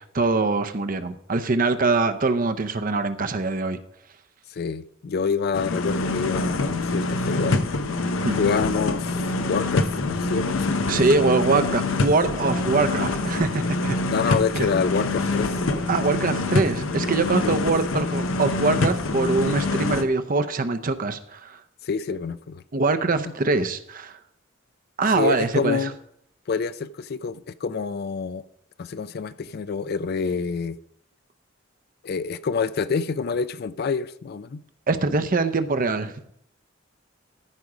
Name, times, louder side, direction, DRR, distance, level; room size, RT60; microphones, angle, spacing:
voice 1, 0.0-3.8 8.2-8.4 10.9-14.0 14.3-14.7 15.9-21.6 22.7-24.2 25.0-25.9 34.9-36.1, right 3 dB, 45° right, 0.7 m, -23 dB
voice 2, 4.5-7.7 8.4-10.8 14.0-15.6 17.4-17.5 21.8-22.6 25.1-25.9 26.5-28.4 28.8-30.8 32.0-34.6, left 5 dB, 50° left, 0.4 m, -27 dB
sound 1, 5.5-20.0, left 2 dB, 90° left, 0.8 m, -25 dB
14.0 x 5.2 x 4.9 m
head